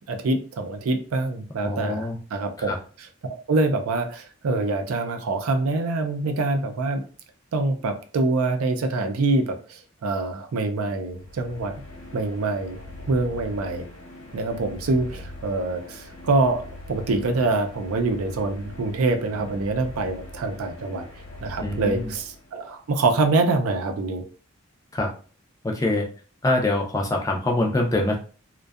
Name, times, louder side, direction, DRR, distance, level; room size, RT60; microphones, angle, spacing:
voice 1, 0.1-2.7 3.0-7.0 7.5-11.8 12.1-12.8 13.1-13.9 14.3-16.6 16.9-21.1 21.4-24.2, right 3 dB, 80° right, 6 dB, 0.4 m, -25 dB
voice 2, 1.6-2.2 2.6-2.8 21.6-22.1 24.9-25.1 25.6-26.0 26.4-28.2, left 2 dB, 15° left, 1 dB, 0.3 m, -24 dB
sound 1, 11.0-22.7, left 1 dB, 70° left, 0.9 m, -41 dB
2.6 x 2.2 x 2.3 m, 0.39 s
head